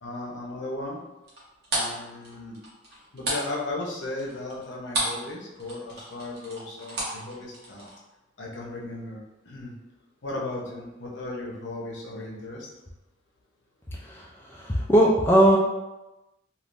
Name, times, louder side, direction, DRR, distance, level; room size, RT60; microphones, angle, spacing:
voice 1, 0.0-1.0 1.7-2.6 2.9-7.9 8.4-9.7 10.2-12.7, left 2 dB, 65° left, -3 dB, 0.7 m, -36 dB
sound 1, 1.3-5.3 5.5-7.9, right 1 dB, 55° right, 1.0 m, -31 dB
voice 2, 14.0-15.6, right 1 dB, 10° left, -4 dB, 0.3 m, -20 dB
3.4 x 2.4 x 2.5 m, 1.0 s
head